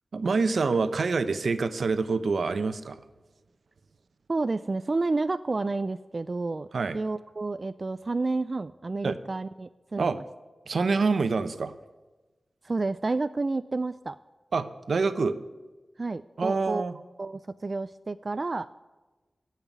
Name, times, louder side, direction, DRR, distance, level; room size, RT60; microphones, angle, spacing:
voice 1, 0.1-3.0 6.7-7.0 9.0-9.2 10.0-10.2 10.7-11.7 14.5-15.4 16.4-17.0, right 4 dB, 80° right, 11 dB, 0.8 m, -26 dB
voice 2, 4.3-6.7 6.9-10.2 12.6-14.2 16.0-16.8 17.2-18.7, right 3 dB, 45° right, 13 dB, 0.3 m, -30 dB
16.5 x 5.7 x 9.2 m, 1.2 s
wide cardioid pair, 65°, 0 cm